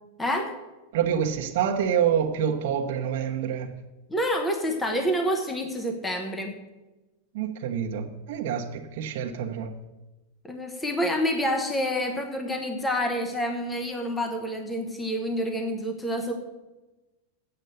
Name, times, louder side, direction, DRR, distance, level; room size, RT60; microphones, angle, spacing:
voice 1, 0.2-0.5 4.1-6.6 10.4-16.3, equal, 5° left, 4 dB, 0.8 m, -28 dB
voice 2, 0.9-3.7 7.3-9.7, right 8 dB, 50° right, 1 dB, 1.0 m, -27 dB
8.0 x 6.8 x 7.9 m, 1.1 s
supercardioid pair, 180°, 0 cm